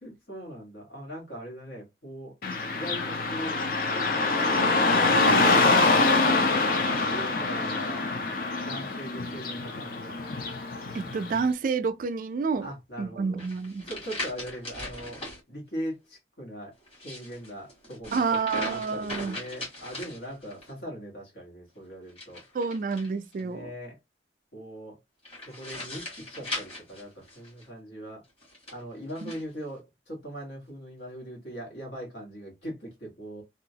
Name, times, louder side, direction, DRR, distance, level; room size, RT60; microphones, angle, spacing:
voice 1, 0.0-2.3 2.7-3.6 3.9-4.1 4.4-5.1 5.4-5.9 6.2-8.0 8.6-10.3 12.6-13.4 13.9-16.7 17.0-18.2 18.5-22.4 23.4-24.0 24.5-25.0 25.5-28.2 28.7-33.4, equal, 75° left, 1.6 m, -40 dB
Car passing by / Traffic noise roadway noise, 2.4-11.4, left 3 dB, 50° left, 0.5 m, -25 dB
voice 2, 10.9-12.7 13.0-13.8 18.1-19.4 22.5-23.7 29.2-29.3, right 5 dB, 45° right, 0.3 m, -29 dB
sound 1, 13.4-15.4 16.8-20.7 22.1-23.4 25.2-27.7 28.4-29.4, left 1 dB, 35° left, 1.6 m, -39 dB
2.8 x 2.3 x 2.7 m
head